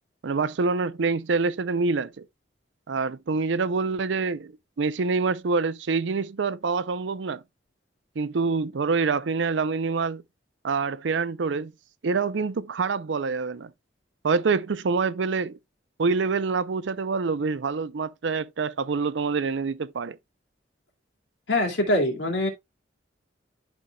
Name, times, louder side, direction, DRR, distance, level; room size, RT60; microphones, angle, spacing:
voice 1, 0.2-2.3 2.9-4.5 4.8-7.4 8.2-10.2 10.6-11.7 12.0-13.7 14.2-15.6 16.0-20.2, right 4 dB, 80° right, 0.5 m, -26 dB
voice 2, 21.5-22.5, left 1 dB, 80° left, 2.4 m, -23 dB
11.5 x 4.5 x 2.3 m
head